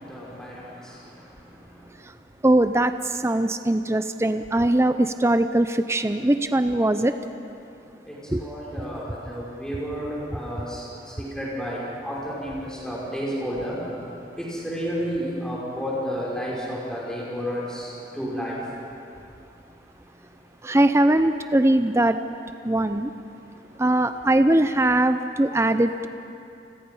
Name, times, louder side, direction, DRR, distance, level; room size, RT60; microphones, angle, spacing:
voice 1, 0.0-2.0 8.0-18.7 19.6-19.7 20.0-20.4 20.7-20.8 23.6-23.7, equal, 5° left, -6 dB, 6.1 m, -32 dB
voice 2, 2.4-7.1 8.3-8.4 20.6-22.2 22.6-23.1 23.8-26.1, right 1 dB, 15° right, 9 dB, 0.5 m, -21 dB
29.5 x 21.0 x 5.6 m, 2.6 s
head